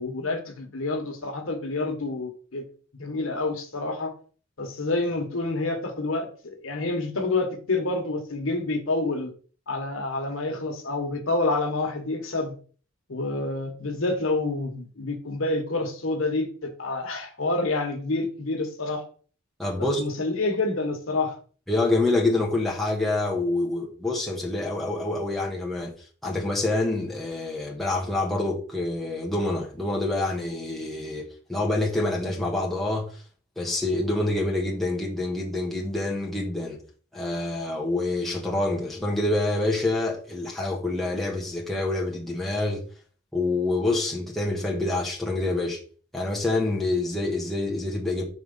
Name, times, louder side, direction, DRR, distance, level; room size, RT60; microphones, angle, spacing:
voice 1, 0.0-2.6 3.0-4.1 4.6-9.3 9.7-12.5 13.1-19.0 19.8-21.4, left 2 dB, 80° left, 1.3 m, -28 dB
voice 2, 19.6-20.0 21.7-25.9 26.2-33.2 33.6-36.8 37.1-42.8 43.3-45.8 46.1-48.2, left 2 dB, ahead, 1.3 m, -26 dB
4.9 x 3.5 x 5.4 m
head